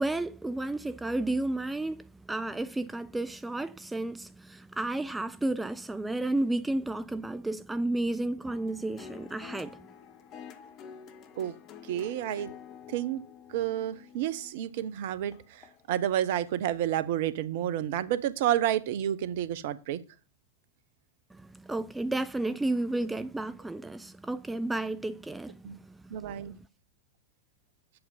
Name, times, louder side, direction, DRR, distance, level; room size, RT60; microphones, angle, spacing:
voice 1, 0.0-9.9 21.3-26.6, right 2 dB, 5° right, 0.4 m, -32 dB
sound 1, 8.4-15.9 16.5-16.6, left 8 dB, 35° left, 1.0 m, -49 dB
voice 2, 11.9-12.5 12.9-13.2 13.5-15.6 15.9-20.0 25.6-25.8 26.1-26.5, right 11 dB, 50° right, 0.7 m, -30 dB
8.4 x 7.8 x 4.1 m
figure-of-eight pair, 90°, 0 cm